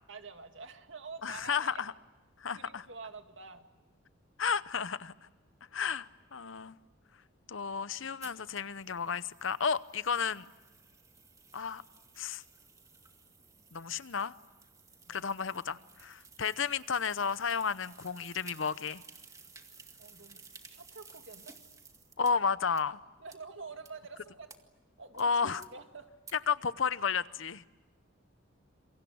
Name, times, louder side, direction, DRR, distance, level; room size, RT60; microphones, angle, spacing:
voice 1, 0.1-1.8 2.5-3.7 15.1-15.3 20.0-20.4 20.7-21.5 23.2-24.5 25.0-26.1, right 4 dB, 65° right, 2.3 m, -47 dB
voice 2, 1.2-1.9 2.4-2.9 4.4-5.1 5.7-6.8 7.5-10.5 11.5-11.8 12.2-12.4 13.7-14.3 15.1-19.0 22.2-23.0 25.2-25.6 26.5-27.6, left 6 dB, 65° left, 0.8 m, -32 dB
sound 1, 8.2-22.3 22.8-22.9 23.3-23.4 23.9-24.0 24.5-24.6 25.2-25.3 25.6-25.7 26.3-26.4, right 4 dB, 15° right, 2.0 m, -56 dB
28.0 x 24.0 x 8.6 m
head